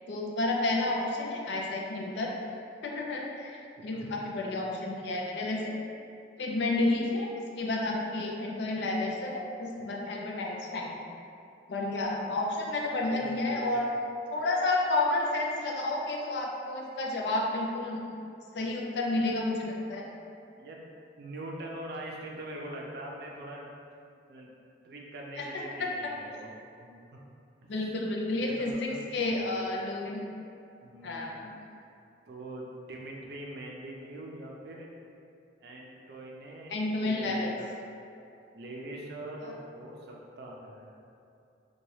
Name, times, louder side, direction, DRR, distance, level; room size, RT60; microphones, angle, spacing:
voice 1, 0.1-2.3 2.8-5.7 6.4-11.0 11.7-13.9 14.3-18.0 18.5-20.1 25.4-25.9 27.7-30.2 31.0-31.5 36.7-37.5 39.4-39.5, left 2 dB, 70° left, -1 dB, 0.4 m, -31 dB
voice 2, 12.9-13.9 20.6-20.8 21.2-23.7 24.3-24.5 24.8-26.5 26.8-27.2 27.6-27.7 28.2-29.4 30.8-31.3 32.3-34.9 35.6-37.8 38.5-41.0, right 1 dB, 60° right, -1 dB, 0.4 m, -43 dB
2.8 x 2.2 x 3.1 m, 2.6 s
head